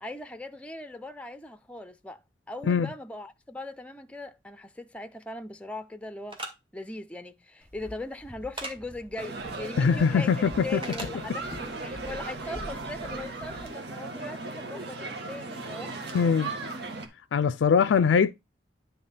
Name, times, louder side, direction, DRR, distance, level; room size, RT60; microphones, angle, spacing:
voice 1, 0.0-2.2 2.5-6.4 6.7-16.0 16.3-16.5, left 2 dB, 5° left, 0.5 m, -40 dB
sound 1, 6.3-6.5 8.6-8.7 10.8-11.1, right 2 dB, 30° right, 1.9 m, -36 dB
Walk footsteps, 7.6-13.7, left 1 dB, 10° right, 1.4 m, -47 dB
sound 2, 9.2-17.1, right 3 dB, 65° right, 1.6 m, -37 dB
voice 2, 9.8-10.8 16.1-16.5 17.3-18.3, left 6 dB, 80° left, 0.4 m, -22 dB
10.5 x 3.5 x 5.7 m
head